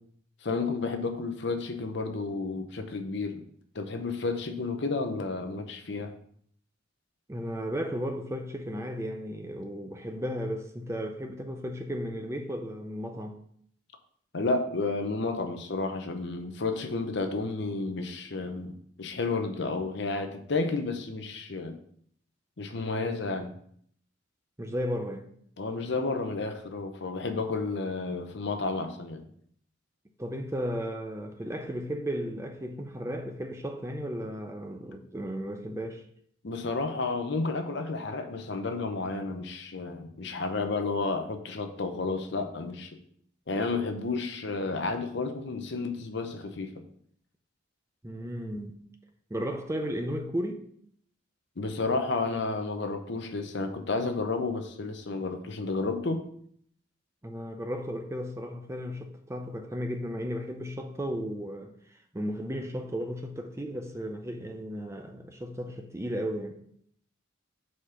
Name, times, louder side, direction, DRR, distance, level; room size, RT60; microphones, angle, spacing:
voice 1, 0.4-3.4 3.7-6.1 14.3-21.7 22.6-23.5 25.6-29.2 36.4-43.0 43.5-46.8 51.6-56.2, left 3 dB, 60° left, 0.8 m, -31 dB
voice 2, 7.3-13.4 24.6-25.3 30.2-36.0 48.0-48.8 49.3-50.6 57.2-61.7 62.1-66.6, equal, 15° right, 0.5 m, -34 dB
5.0 x 4.1 x 5.7 m
head